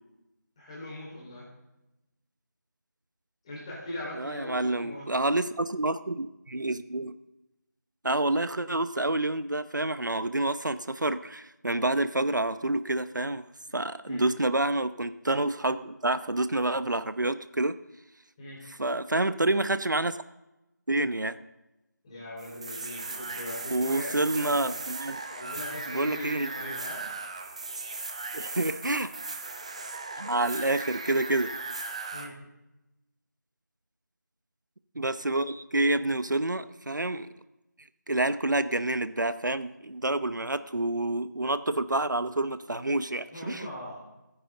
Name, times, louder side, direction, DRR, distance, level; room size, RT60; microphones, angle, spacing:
voice 1, 0.6-1.5 3.4-5.2 14.1-14.3 18.4-18.6 22.0-24.8 25.3-27.0 32.1-32.3 43.3-44.0, left 1 dB, 15° left, -5 dB, 4.3 m, -40 dB
voice 2, 4.1-7.1 8.0-13.5 13.7-17.8 18.8-20.2 20.9-21.4 23.7-25.2 25.9-26.5 28.3-29.1 30.2-31.5 35.0-37.3 38.1-43.7, right 2 dB, 75° right, 12 dB, 0.9 m, -28 dB
sound 1, 22.4-32.3, right 3 dB, 20° right, 0.6 m, -37 dB
24.5 x 10.0 x 3.9 m, 0.96 s
figure-of-eight pair, 165°, 10 cm